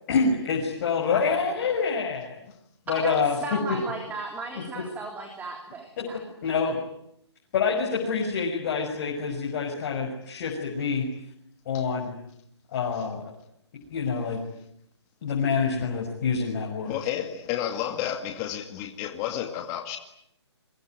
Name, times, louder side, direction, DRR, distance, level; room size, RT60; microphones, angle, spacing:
voice 1, 0.1-2.4 2.9-3.8 4.5-4.6 6.0-6.1 6.4-6.8 7.5-11.1 11.7-12.1 12.7-13.2 13.9-14.4 15.2-17.0, left 5 dB, 40° left, -1 dB, 6.3 m, -26 dB
voice 2, 2.9-6.2, right 3 dB, 10° right, 3 dB, 3.5 m, -35 dB
voice 3, 16.9-20.0, left 10 dB, 25° left, 5 dB, 2.1 m, -31 dB
27.0 x 23.0 x 9.4 m, 0.75 s
hypercardioid pair, 145°, 15 cm